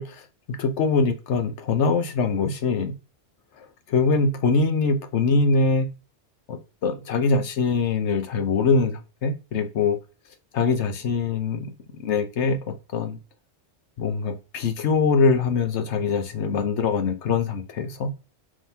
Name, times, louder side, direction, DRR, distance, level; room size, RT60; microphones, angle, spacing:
voice 1, 0.0-2.9 3.6-5.9 6.5-10.0 10.5-11.7 12.0-13.2 14.0-18.1, left 4 dB, 75° left, 1.1 m, -23 dB
5.0 x 3.8 x 2.7 m
omnidirectional pair, 1.2 m